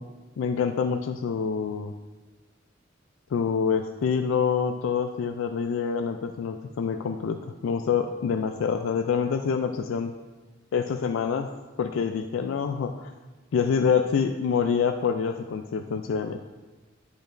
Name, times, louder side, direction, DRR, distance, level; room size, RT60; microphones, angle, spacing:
voice 1, 0.4-1.9 3.3-10.1 10.7-11.5 11.8-13.1 13.5-16.4, left 6 dB, 70° left, 7 dB, 0.3 m, -26 dB
11.0 x 5.0 x 2.6 m, 1.2 s
head